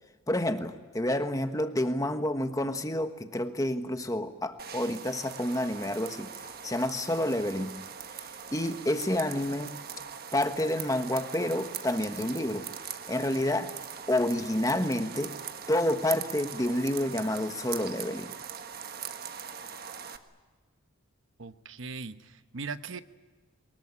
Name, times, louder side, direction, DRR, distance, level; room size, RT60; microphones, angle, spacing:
voice 1, 0.3-7.7 8.5-9.7 10.3-12.7 13.1-13.7 14.1-15.3 15.7-18.3, left 1 dB, 15° left, 8 dB, 1.3 m, -29 dB
sound 1, 4.6-20.2, right 7 dB, 45° right, 1.4 m, -41 dB
voice 2, 21.4-23.0, right 4 dB, 65° right, 11 dB, 1.0 m, -39 dB
23.0 x 21.0 x 9.9 m, 1.4 s
head